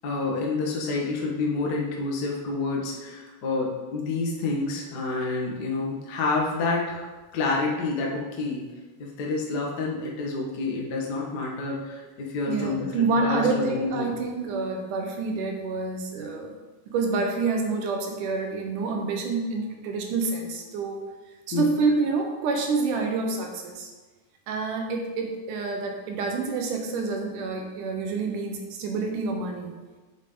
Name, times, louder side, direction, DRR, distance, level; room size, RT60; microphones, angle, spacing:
voice 1, 0.0-7.1 7.3-8.6 9.0-14.1 21.5-21.7, left 3 dB, 50° left, -2 dB, 1.3 m, -28 dB
voice 2, 12.5-16.5 16.9-21.0 21.5-23.9 24.5-29.7, right 3 dB, 85° right, 3 dB, 2.5 m, -27 dB
7.2 x 7.0 x 3.8 m, 1.3 s
omnidirectional pair, 3.5 m